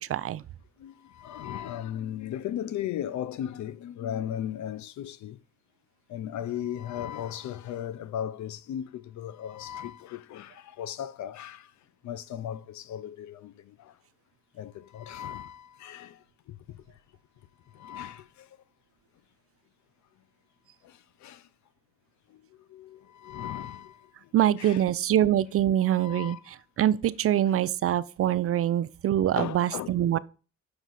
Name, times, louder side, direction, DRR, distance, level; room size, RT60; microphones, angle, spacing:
voice 1, 0.1-0.4 24.3-26.4 26.8-30.2, right 11 dB, 50° right, 0.4 m, -24 dB
voice 2, 0.8-5.4 6.1-11.7 12.0-13.9 14.5-16.2 16.5-16.8 17.7-18.5 20.8-21.5 22.3-24.3 24.6-24.8 25.8-26.5 29.3-29.9, left 10 dB, 70° left, 0.6 m, -37 dB
6.5 x 4.8 x 4.0 m
cardioid pair, 90°, 30 cm